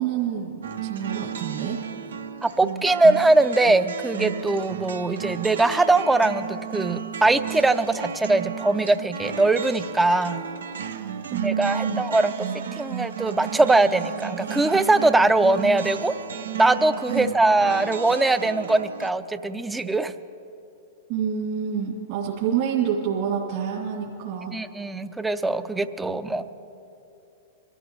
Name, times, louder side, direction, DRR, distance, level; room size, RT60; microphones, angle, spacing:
voice 1, 0.0-1.8 11.2-12.0 17.1-17.3 21.1-24.5, right 8 dB, 55° right, -5 dB, 2.5 m, -27 dB
sound 1, 0.6-19.1, right 8 dB, 85° right, 0.6 m, -34 dB
voice 2, 2.4-10.4 11.3-12.5 12.7-16.1 16.6-20.1 24.5-26.4, right 2 dB, 10° right, 11 dB, 0.5 m, -21 dB
23.0 x 13.5 x 3.2 m, 2.7 s
hypercardioid pair, 120°, 0 cm